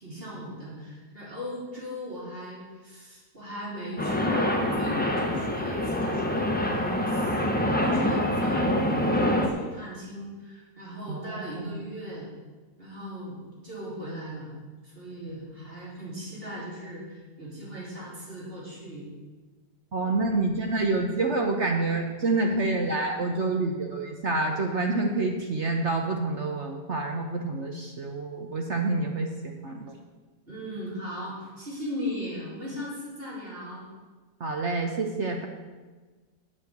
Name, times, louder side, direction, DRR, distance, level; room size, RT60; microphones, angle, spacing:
voice 1, 0.0-12.3 12.8-19.1 30.5-33.9, left 1 dB, 35° right, -6 dB, 4.0 m, -38 dB
sound 1, 4.0-9.5, left 1 dB, 5° left, 0.8 m, -25 dB
voice 2, 11.1-11.8 19.9-30.0 34.4-35.5, right 3 dB, 50° right, 2 dB, 1.1 m, -28 dB
8.6 x 7.5 x 8.3 m, 1.3 s
omnidirectional pair, 1.7 m